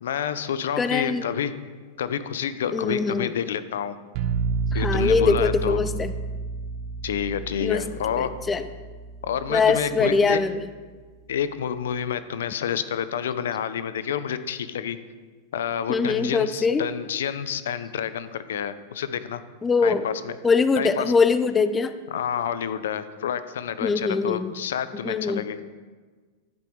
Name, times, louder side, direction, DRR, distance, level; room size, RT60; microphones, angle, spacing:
voice 1, 0.0-1.6 2.0-4.0 4.7-5.8 7.0-8.3 9.2-10.4 11.3-15.0 15.5-19.4 19.8-20.4 20.8-21.1 22.1-25.6, left 8 dB, 90° left, 13 dB, 0.6 m, -29 dB
voice 2, 0.8-1.3 2.7-3.3 4.7-6.1 7.6-8.7 9.5-10.6 15.9-16.9 19.6-20.1 20.4-21.9 23.8-24.5 25.0-25.5, left 4 dB, 15° left, 11 dB, 0.4 m, -22 dB
sound 1, 4.1-9.9, right 5 dB, 45° right, 1.0 m, -30 dB
15.0 x 5.4 x 4.6 m, 1.4 s
supercardioid pair, 150°, 0 cm